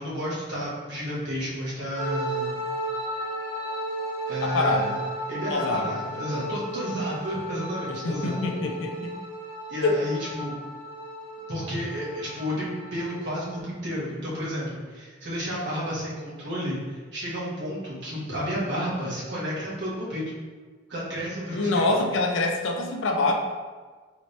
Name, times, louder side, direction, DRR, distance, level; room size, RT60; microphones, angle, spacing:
voice 1, 0.0-2.6 4.3-4.9 5.3-8.4 9.7-10.5 11.5-20.2 20.9-21.9, equal, 65° right, -7 dB, 1.2 m, -31 dB
sound 1, 1.9-13.6, right 1 dB, 30° right, 1.2 m, -34 dB
voice 2, 4.4-4.9 5.5-5.9 7.9-9.1 9.8-10.0 21.5-23.3, left 2 dB, 85° left, 2 dB, 0.5 m, -25 dB
3.2 x 3.1 x 2.7 m, 1.4 s
head